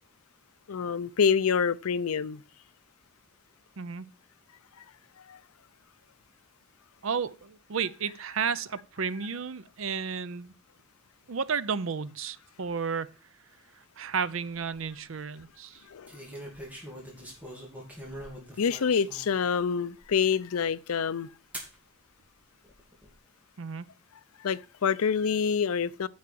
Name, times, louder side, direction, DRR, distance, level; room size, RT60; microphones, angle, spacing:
voice 1, 0.7-2.4 5.3-5.4 15.9-16.1 18.6-21.3 24.4-26.1, left 6 dB, 80° left, 0.5 m, -27 dB
voice 2, 3.8-4.1 7.0-10.5 11.3-13.1 14.0-15.8 23.6-23.9, right 6 dB, 65° right, 0.6 m, -32 dB
sound 1, 14.4-14.8 16.1-19.4 20.0-20.1 21.5-21.8 22.6-23.1, equal, 5° right, 2.7 m, -43 dB
9.5 x 5.6 x 7.7 m
head